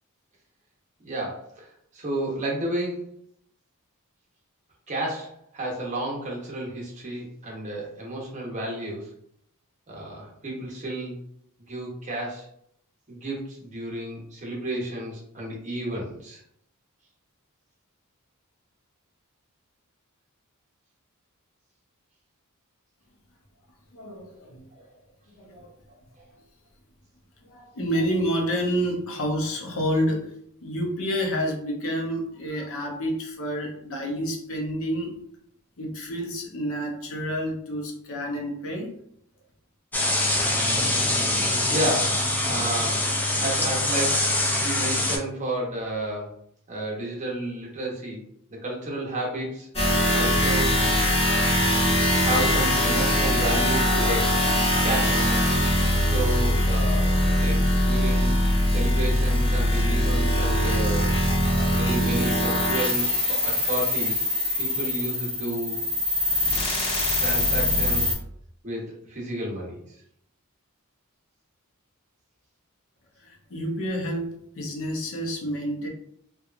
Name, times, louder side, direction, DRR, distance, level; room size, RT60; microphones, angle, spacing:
voice 1, 1.0-3.0 4.9-9.1 9.9-11.2 11.7-12.5 13.1-16.4 24.7-24.8 41.7-43.1 43.4-44.2 44.6-46.3 46.7-48.2 48.5-49.7 50.1-50.8 52.2-54.4 54.8-55.6 56.0-58.3 58.7-61.1 61.5-63.1 63.4-64.2 64.6-65.8 67.2-68.1 68.6-70.0, right 1 dB, 35° right, -3 dB, 0.8 m, -31 dB
voice 2, 23.9-24.7 25.4-25.7 27.4-35.2 35.8-39.0 73.2-75.9, equal, 65° left, 1 dB, 0.6 m, -29 dB
sound 1, 39.9-45.2, left 1 dB, 10° left, 0.3 m, -24 dB
sound 2, 49.7-68.1, left 1 dB, 30° left, 1.0 m, -22 dB
2.8 x 2.3 x 2.4 m, 0.70 s
head